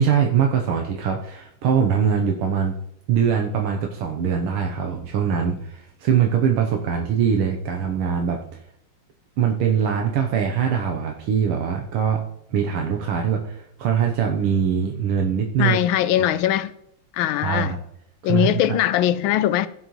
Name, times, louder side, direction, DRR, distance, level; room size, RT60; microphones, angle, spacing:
voice 1, 0.0-2.8 3.1-8.6 9.4-12.2 12.5-15.8 17.4-17.8 18.2-18.8, right 7 dB, 80° right, 1.8 m, -22 dB
voice 2, 15.6-16.7 17.1-17.7 18.2-19.7, left 12 dB, 75° left, 1.3 m, -21 dB
16.0 x 6.6 x 3.1 m
omnidirectional pair, 2.4 m